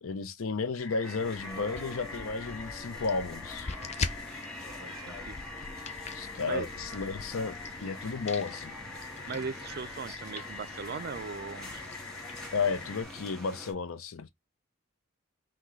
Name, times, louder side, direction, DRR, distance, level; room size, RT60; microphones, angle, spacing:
voice 1, 0.0-3.7 6.1-8.8 12.5-14.3, left 4 dB, 90° left, 0.6 m, -33 dB
sound 1, 0.8-13.0, left 5 dB, 70° left, 1.1 m, -45 dB
sound 2, 1.0-13.7, equal, 5° left, 1.5 m, -46 dB
sound 3, 1.2-13.3, left 4 dB, 30° left, 0.4 m, -43 dB
voice 2, 4.8-5.4 6.1-6.7 9.3-11.8, right 5 dB, 50° right, 0.4 m, -39 dB
5.9 x 2.2 x 3.1 m
head